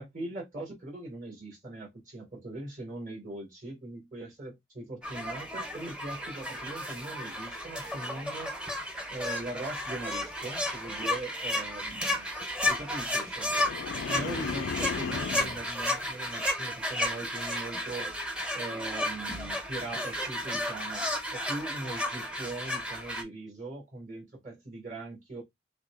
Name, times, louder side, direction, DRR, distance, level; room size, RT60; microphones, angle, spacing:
voice 1, 0.0-8.5 9.1-12.3 12.6-13.5 14.0-18.1 18.5-25.4, right 2 dB, 45° right, 2.5 m, -40 dB
sound 1, 5.0-23.2, left 1 dB, 5° right, 0.7 m, -33 dB
sound 2, 13.5-15.6, left 6 dB, 90° left, 0.4 m, -35 dB
6.4 x 2.1 x 2.4 m
head